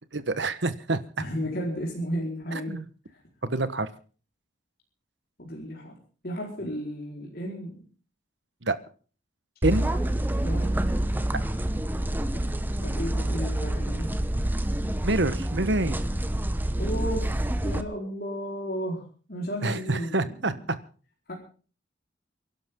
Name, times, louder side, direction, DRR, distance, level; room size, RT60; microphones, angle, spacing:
voice 1, 0.1-1.0 2.5-2.8 3.4-3.9 8.6-8.7 9.6-9.9 11.3-11.4 15.0-16.0 19.6-20.5, right 2 dB, 70° right, 13 dB, 1.3 m, -27 dB
voice 2, 1.2-2.8 3.1-3.2 5.4-6.0 6.2-7.8 10.4-10.8 12.3-12.4 12.8-14.2 16.8-17.3 17.6-20.6 21.3-21.4, equal, 55° left, -2 dB, 4.5 m, -33 dB
sound 1, 9.6-17.8, right 1 dB, 10° right, 0.9 m, -27 dB
28.5 x 11.5 x 3.8 m, 0.39 s
head